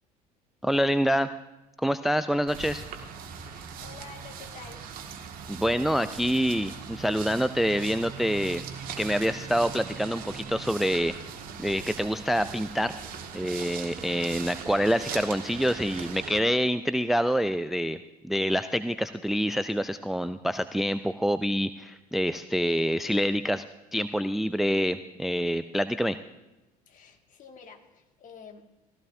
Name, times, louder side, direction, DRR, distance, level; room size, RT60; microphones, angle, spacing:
voice 1, 0.6-1.3 1.8-2.8 5.5-8.6 9.0-11.1 11.6-12.9 13.3-18.0 18.2-23.6 23.9-26.2, equal, ahead, 13 dB, 0.4 m, -26 dB
sound 1, 2.5-16.4, right 6 dB, 45° right, 1.8 m, -40 dB
voice 2, 3.4-4.8 26.9-28.8, left 5 dB, 40° left, 4 dB, 2.0 m, -49 dB
19.0 x 15.5 x 2.7 m, 1.0 s
figure-of-eight pair, 65°, 20 cm